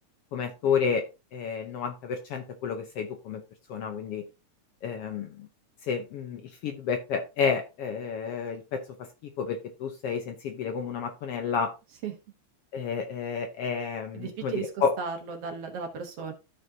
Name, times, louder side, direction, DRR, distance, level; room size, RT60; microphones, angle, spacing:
voice 1, 0.3-1.0 1.3-3.4 3.7-4.2 4.8-5.5 5.8-9.1 9.4-11.7 12.7-14.9, left 6 dB, 70° left, 5 dB, 1.5 m, -30 dB
voice 2, 14.1-14.7 15.0-16.3, right 6 dB, 60° right, 5 dB, 2.0 m, -35 dB
13.5 x 5.1 x 2.7 m, 0.28 s
omnidirectional pair, 3.4 m